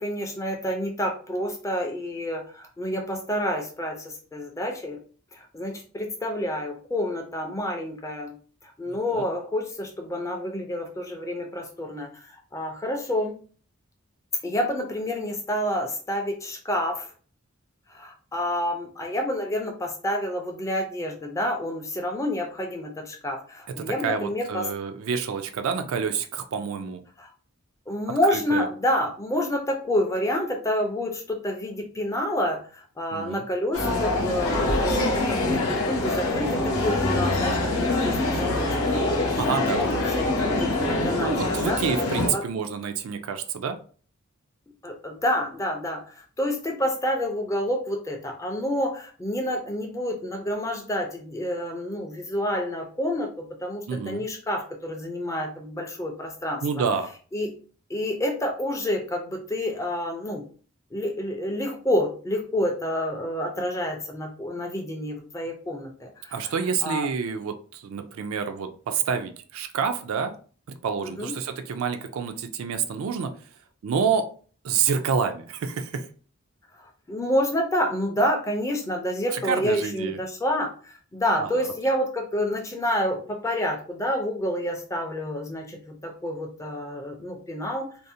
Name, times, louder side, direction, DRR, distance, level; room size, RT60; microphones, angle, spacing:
voice 1, 0.0-5.0 5.3-8.3 8.6-13.4 14.4-17.1 17.9-24.6 27.2-27.3 27.9-41.8 42.3-42.4 44.8-56.8 57.3-57.5 57.9-60.4 60.9-66.5 66.8-67.1 71.0-71.3 77.1-88.0, left 1 dB, 15° left, 2 dB, 0.4 m, -28 dB
voice 2, 8.9-9.2 24.0-27.0 28.3-28.6 33.1-33.4 39.4-40.0 41.2-43.8 53.9-54.2 56.6-57.1 66.3-70.3 70.8-73.3 73.8-74.3 74.6-76.1 79.3-80.2 81.4-81.5, right 6 dB, 65° right, 7 dB, 0.3 m, -28 dB
sound 1, 33.7-42.3, left 2 dB, 75° left, 0.7 m, -24 dB
2.5 x 2.0 x 2.6 m, 0.41 s
head